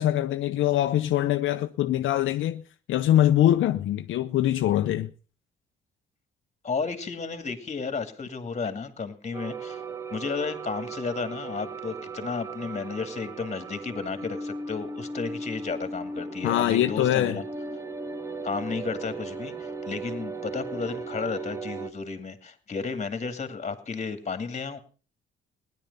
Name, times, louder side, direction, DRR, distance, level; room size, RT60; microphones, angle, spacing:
voice 1, 0.0-2.6 2.9-5.1 16.4-17.4, left 12 dB, 75° left, 0.7 m, -23 dB
voice 2, 6.6-9.8 10.1-17.4 18.4-24.8, left 5 dB, 35° left, 2.5 m, -33 dB
sound 1, 9.3-21.9, right 3 dB, 15° right, 1.2 m, -37 dB
17.0 x 11.0 x 5.5 m
cardioid pair, 90°, 20 cm